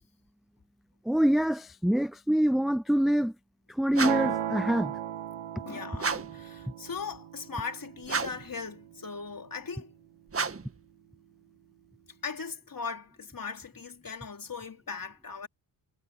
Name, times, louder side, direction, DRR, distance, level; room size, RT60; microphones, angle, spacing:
voice 1, 1.1-3.3 3.7-4.9, equal, ahead, 0.5 m, -25 dB
sound 1, 3.9-4.4 6.0-6.4 8.0-8.5 10.3-10.8, right 4 dB, 25° right, 1.8 m, -32 dB
sound 2, 4.0-10.0, right 11 dB, 70° right, 2.0 m, -37 dB
voice 2, 5.6-9.9 12.2-15.5, left 5 dB, 40° left, 3.9 m, -39 dB
cardioid pair, 65°, 49 cm